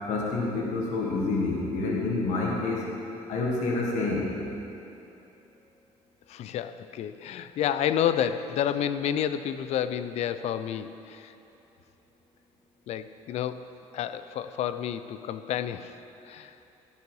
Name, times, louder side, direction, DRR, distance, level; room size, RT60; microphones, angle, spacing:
voice 1, 0.1-2.9 3.3-4.3, left 3 dB, 85° left, -2 dB, 1.5 m, -28 dB
voice 2, 6.3-11.3 12.9-13.7 13.9-16.0 16.3-16.5, left 9 dB, 65° left, 12 dB, 0.4 m, -30 dB
14.5 x 5.6 x 4.7 m, 2.9 s
cardioid pair, 135°, 12 cm